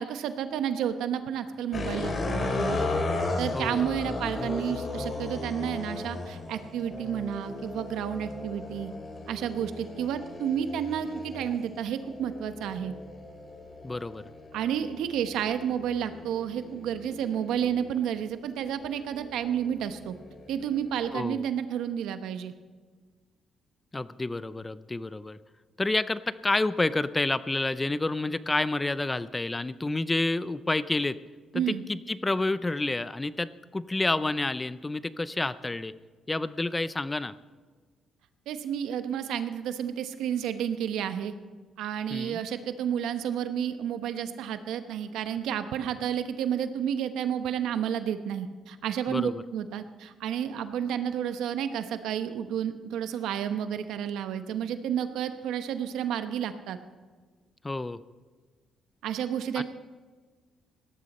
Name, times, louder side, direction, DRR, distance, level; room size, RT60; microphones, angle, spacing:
voice 1, 0.0-2.8 3.4-8.9 9.3-12.9 14.5-20.2 20.5-22.5 31.5-31.8 38.5-41.3 41.8-56.8 59.0-59.6, right 9 dB, 85° right, 10 dB, 0.9 m, -31 dB
sound 1, 1.7-18.0 18.7-21.2, left 2 dB, 40° left, 2.6 m, -36 dB
voice 2, 3.5-3.9 13.8-14.2 21.1-21.4 23.9-25.4 25.8-31.2 31.5-35.9 36.3-37.3 42.1-42.4 49.1-49.4 57.6-58.0 59.6-59.7, left 2 dB, 20° left, 15 dB, 0.5 m, -29 dB
18.0 x 13.0 x 4.2 m, 1.4 s
cardioid pair, 90°, 0 cm